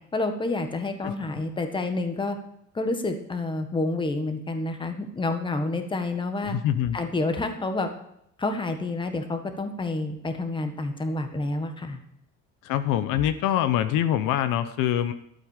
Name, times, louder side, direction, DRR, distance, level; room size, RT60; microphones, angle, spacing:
voice 1, 0.1-2.4 2.7-6.6 6.9-7.9 8.4-12.0, left 2 dB, 15° left, 6 dB, 1.6 m, -29 dB
voice 2, 6.5-7.0 12.6-15.1, left 11 dB, 75° left, 11 dB, 1.0 m, -24 dB
12.5 x 8.3 x 6.6 m, 0.75 s
cardioid pair, 150°, 33 cm